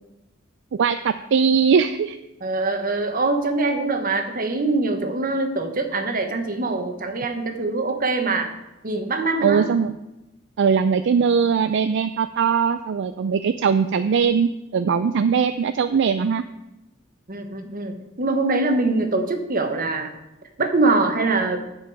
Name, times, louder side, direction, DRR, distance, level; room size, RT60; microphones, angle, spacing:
voice 1, 0.8-2.2 9.4-9.9 10.6-16.4, right 6 dB, 65° right, 11 dB, 0.4 m, -20 dB
voice 2, 2.4-8.5 8.8-9.7 17.3-20.1 20.6-21.6, right 3 dB, 45° right, 5 dB, 1.2 m, -23 dB
14.0 x 5.3 x 4.8 m, 0.95 s
head